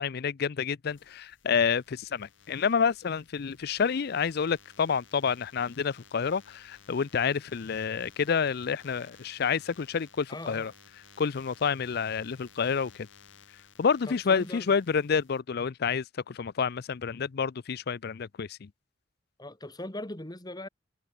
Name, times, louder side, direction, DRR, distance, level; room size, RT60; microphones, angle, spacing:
voice 1, 0.0-10.7 11.2-13.1 13.8-18.7, left 6 dB, 55° left, 0.5 m, -29 dB
sound 1, 0.9-15.4, left 6 dB, 80° left, 3.8 m, -57 dB
voice 2, 10.3-10.7 14.1-14.7 19.4-20.7, left 1 dB, 20° left, 2.8 m, -40 dB
head